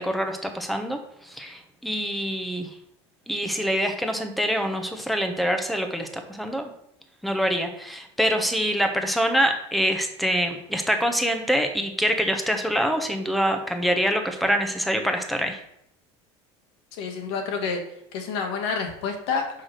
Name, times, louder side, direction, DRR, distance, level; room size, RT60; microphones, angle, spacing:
voice 1, 0.0-2.7 3.3-6.7 7.2-15.6, equal, ahead, 5 dB, 1.0 m, -25 dB
voice 2, 17.0-17.8 18.1-19.5, left 5 dB, 80° left, 4 dB, 1.8 m, -28 dB
5.8 x 4.8 x 6.5 m, 0.76 s
supercardioid pair, 135°, 13 cm